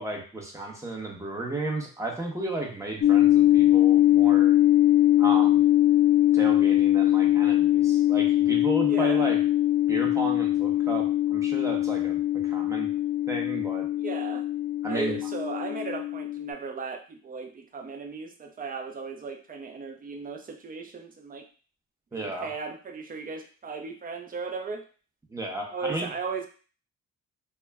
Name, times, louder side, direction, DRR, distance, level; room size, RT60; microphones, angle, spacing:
voice 1, 0.0-4.5 5.2-5.6 6.3-9.4 9.9-12.9 13.3-13.9 14.8-15.2 22.1-22.5 25.3-26.1, right 2 dB, 10° right, 0 dB, 0.8 m, -33 dB
sound 1, 3.0-16.5, left 13 dB, 35° left, 0.5 m, -22 dB
voice 2, 8.8-9.2 14.0-14.4 14.9-21.5 22.1-24.8 25.7-26.5, right 4 dB, 30° right, 4 dB, 0.5 m, -36 dB
2.2 x 2.0 x 3.4 m, 0.38 s
cardioid pair, 90°, 30 cm